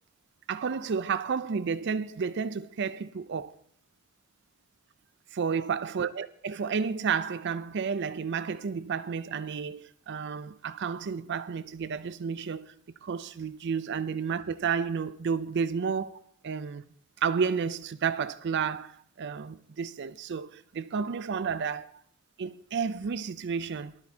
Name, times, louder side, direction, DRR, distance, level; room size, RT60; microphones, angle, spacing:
voice 1, 0.5-3.5 5.3-12.7 13.0-16.8 17.2-21.9 22.4-23.9, right 6 dB, 55° right, 0.4 m, -31 dB
19.0 x 12.5 x 2.8 m
head